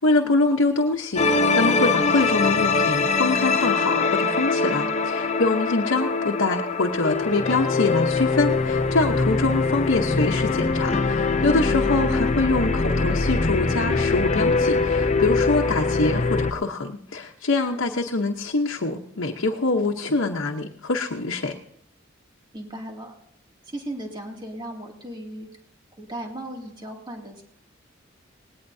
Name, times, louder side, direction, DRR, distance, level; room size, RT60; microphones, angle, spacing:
voice 1, 0.0-21.6, left 3 dB, 90° left, 1 dB, 1.0 m, -24 dB
sound 1, 1.2-16.5, left 3 dB, 35° left, 0.7 m, -23 dB
voice 2, 22.5-23.2 23.6-25.5 26.0-27.4, right 1 dB, 25° right, 0 dB, 2.5 m, -36 dB
19.0 x 17.5 x 2.7 m, 0.73 s
head